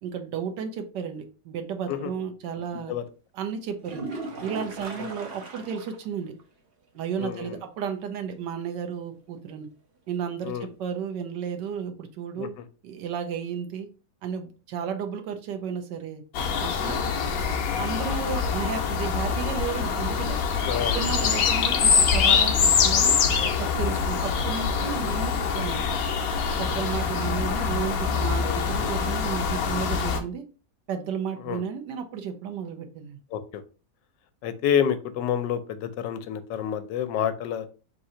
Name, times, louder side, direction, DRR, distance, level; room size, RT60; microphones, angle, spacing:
voice 1, 0.0-2.9 3.3-4.1 4.4-6.3 6.9-9.7 10.1-12.5 12.8-13.9 14.2-16.2 16.6-17.0 17.4-17.5 17.8-20.4 20.9-23.2 23.6-25.9 26.6-30.4 30.9-33.2, right 7 dB, 80° right, 5 dB, 1.4 m, -33 dB
sound 1, 3.8-6.1 6.4-6.5 6.9-7.0 10.8-10.9, right 3 dB, 55° right, 0.6 m, -37 dB
voice 2, 7.2-7.6 10.4-10.7 12.4-12.5 16.8-17.2 20.7-21.5 23.4-23.5 28.4-28.9 31.4-31.6 33.3-33.6 34.4-37.7, left 9 dB, 90° left, 11 dB, 1.3 m, -29 dB
sound 2, 16.3-30.2, left 6 dB, 65° left, 1.0 m, -24 dB
3.8 x 2.7 x 4.2 m, 0.35 s
omnidirectional pair, 1.9 m